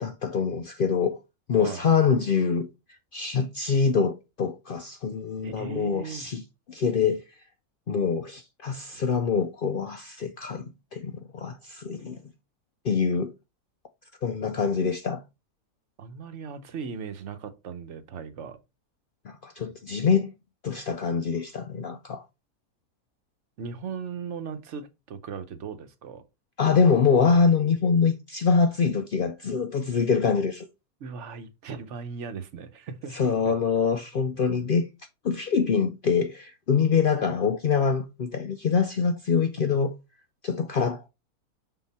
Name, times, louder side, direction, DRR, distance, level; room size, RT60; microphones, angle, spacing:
voice 1, 0.0-1.2 1.5-2.7 3.1-7.2 7.9-12.2 12.8-13.3 14.2-15.2 19.2-20.3 20.6-22.2 26.6-30.7 33.1-34.9 35.2-39.9 40.4-41.1, left 5 dB, 85° left, 0.4 m, -25 dB
voice 2, 5.4-6.3 8.9-9.2 16.0-18.6 23.6-26.2 31.0-33.5, right 6 dB, 55° right, 1.0 m, -38 dB
6.5 x 3.9 x 4.1 m
omnidirectional pair, 1.6 m